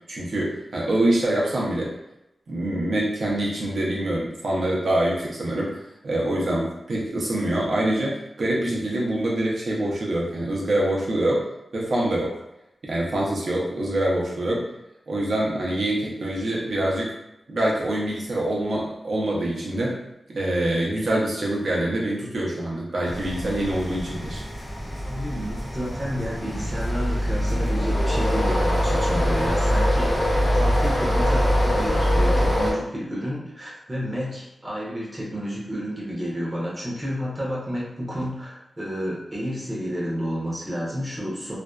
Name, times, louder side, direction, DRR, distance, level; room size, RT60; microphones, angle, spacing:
voice 1, 0.1-1.9 2.5-11.4 11.7-12.4 12.8-14.7 15.1-17.1 17.5-20.0 20.3-24.4, right 1 dB, 65° right, -4 dB, 0.6 m, -25 dB
sound 1, 23.1-32.7, equal, 25° left, 0.6 m, -23 dB
voice 2, 25.0-41.6, equal, 20° right, -6 dB, 0.7 m, -31 dB
2.5 x 2.2 x 2.2 m, 0.89 s
wide cardioid pair, 125°, 0 cm